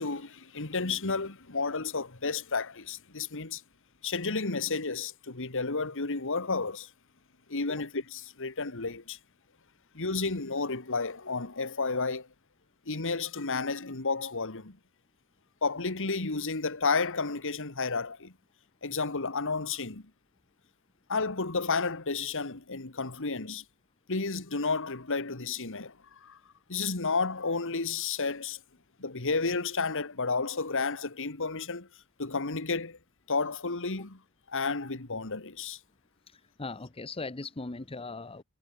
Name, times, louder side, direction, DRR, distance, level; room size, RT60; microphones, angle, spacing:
voice 1, 0.0-3.6 4.0-6.9 7.5-9.2 9.9-12.3 12.9-14.8 15.6-18.3 18.8-20.0 21.1-23.6 24.1-26.4 26.7-28.6 29.0-31.9 32.2-33.0 33.3-34.2 34.5-35.8, left 4 dB, 60° left, 2.1 m, -31 dB
voice 2, 36.3-38.4, left 3 dB, 25° left, 0.9 m, -39 dB
head